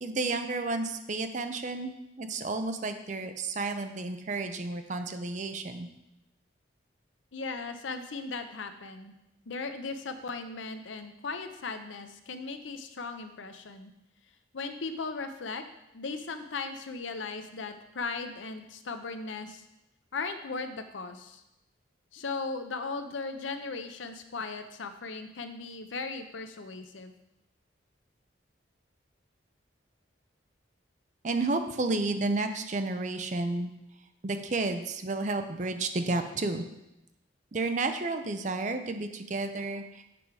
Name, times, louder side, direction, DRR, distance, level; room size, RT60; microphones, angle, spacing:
voice 1, 0.0-5.9 31.2-33.7 34.2-36.6 37.5-40.0, right 3 dB, 40° right, 7 dB, 0.5 m, -31 dB
voice 2, 7.3-9.1 9.5-13.9 14.5-15.6 15.9-19.6 20.1-21.4 22.1-27.1, left 4 dB, 80° left, 8 dB, 0.7 m, -37 dB
7.7 x 4.7 x 4.8 m, 0.89 s
head